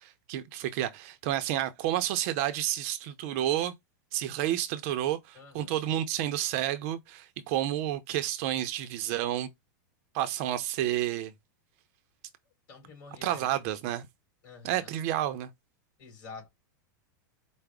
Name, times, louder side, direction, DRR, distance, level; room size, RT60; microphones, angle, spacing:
voice 1, 0.0-3.7 4.1-9.5 10.1-11.3 13.2-14.0 14.6-15.5, right 12 dB, 45° right, 0.5 m, -30 dB
voice 2, 5.3-5.8 12.7-13.5 14.4-14.9 16.0-16.5, left 4 dB, 40° left, 2.7 m, -48 dB
4.8 x 2.0 x 3.4 m
supercardioid pair, 150°, 10 cm